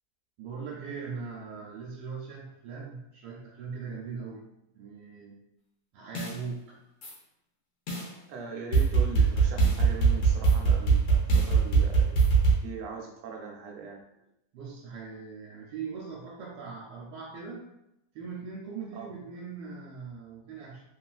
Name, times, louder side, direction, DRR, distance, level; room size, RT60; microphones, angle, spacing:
voice 1, 0.4-4.5 4.7-5.4 5.9-6.8 14.5-17.7 18.1-20.8, right 5 dB, 85° right, -3 dB, 1.2 m, -40 dB
sound 1, 6.1-6.3 7.0-7.1 7.9-8.0 8.7-12.5, right 5 dB, 75° left, 1.3 m, -22 dB
voice 2, 8.3-12.2 12.6-14.0 18.9-19.1, right 5 dB, 70° right, 0 dB, 0.8 m, -40 dB
3.1 x 2.4 x 2.3 m, 0.85 s
omnidirectional pair, 1.8 m